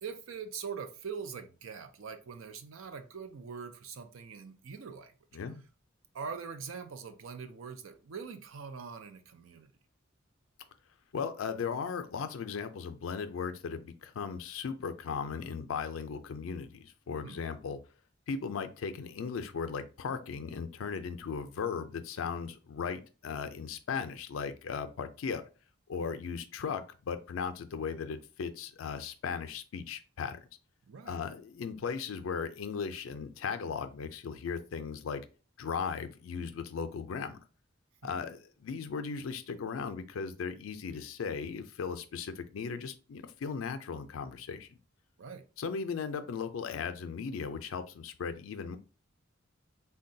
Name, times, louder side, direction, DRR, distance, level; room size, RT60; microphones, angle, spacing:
voice 1, 0.0-5.1 6.1-9.7 17.2-17.4 30.9-31.2 38.0-38.1 45.2-45.4, right 6 dB, 80° right, 0.5 m, -43 dB
voice 2, 11.1-17.8 18.3-25.4 25.9-30.4 31.1-35.3 35.6-37.4 38.0-44.8 45.6-48.8, left 6 dB, 85° left, 0.4 m, -37 dB
3.7 x 2.2 x 2.6 m
head